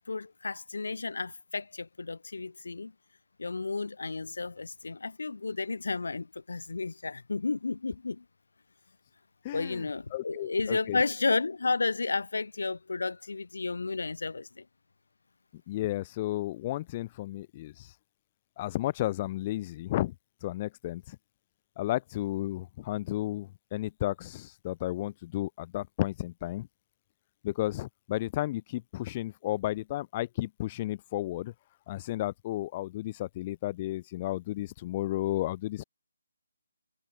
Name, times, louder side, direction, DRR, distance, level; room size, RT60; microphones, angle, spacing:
voice 1, 0.1-2.9 3.4-8.2 9.5-14.6, left 3 dB, 75° left, 4.6 m, -32 dB
voice 2, 9.4-9.8 10.1-11.0 15.7-17.9 18.6-20.1 20.4-21.2 21.8-26.7 27.4-31.5 31.9-35.8, left 15 dB, 20° left, 0.5 m, -33 dB
hypercardioid pair, 170°, 0 cm